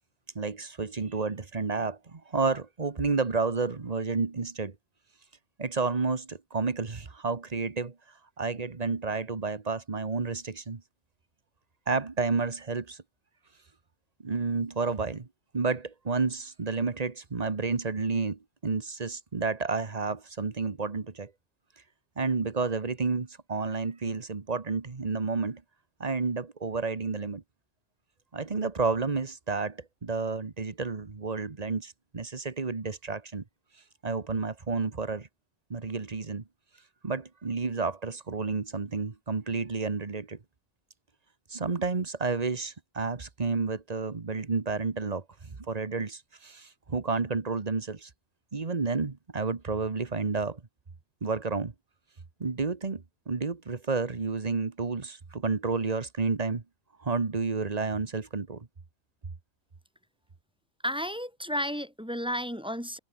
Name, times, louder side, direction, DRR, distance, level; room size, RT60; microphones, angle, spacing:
voice 1, 0.3-4.7 5.6-7.9 8.4-10.8 11.9-13.0 14.2-15.3 15.5-21.3 22.2-25.6 26.0-27.4 28.3-33.4 34.0-35.3 35.7-36.4 37.0-40.4 41.5-48.1 48.5-50.6 51.2-51.7 52.4-56.6 57.0-58.7, right 4 dB, 35° right, 1.4 m, -30 dB
voice 2, 60.8-63.0, equal, 5° right, 1.6 m, -32 dB
omnidirectional pair, 1.3 m